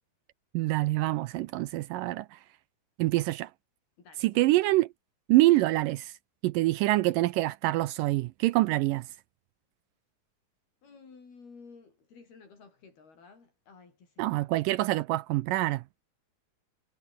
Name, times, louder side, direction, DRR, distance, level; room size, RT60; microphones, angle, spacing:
voice 1, 0.5-2.4 3.0-3.5 4.2-4.9 5.3-6.1 6.4-9.1 14.2-15.8, right 18 dB, 80° right, 2.0 m, -25 dB
voice 2, 4.0-4.4 10.8-14.5, left 4 dB, 85° left, 8.5 m, -54 dB
omnidirectional pair, 4.3 m